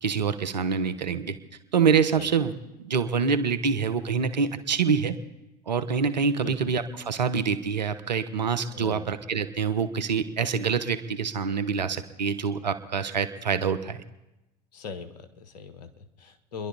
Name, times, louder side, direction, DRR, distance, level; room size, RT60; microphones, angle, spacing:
voice 1, 0.0-1.3 1.7-5.1 5.7-14.0, right 6 dB, 90° right, 11 dB, 1.0 m, -26 dB
voice 2, 6.4-6.7 8.7-9.1 14.7-16.7, left 5 dB, 75° left, 9 dB, 1.5 m, -40 dB
30.0 x 11.5 x 4.1 m, 0.96 s
hypercardioid pair, 80°, 21 cm